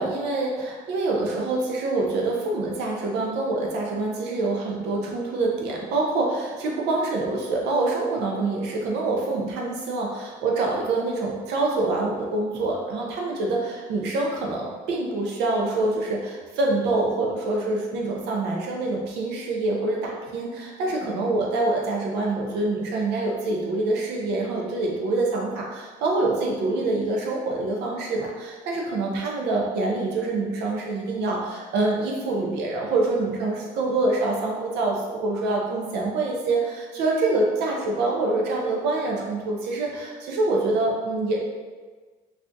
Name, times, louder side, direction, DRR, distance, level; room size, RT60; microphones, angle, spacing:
voice 1, 0.0-41.4, right 2 dB, 80° right, -1 dB, 0.5 m, -26 dB
3.3 x 2.4 x 2.6 m, 1.4 s
cardioid pair, 110°, 17 cm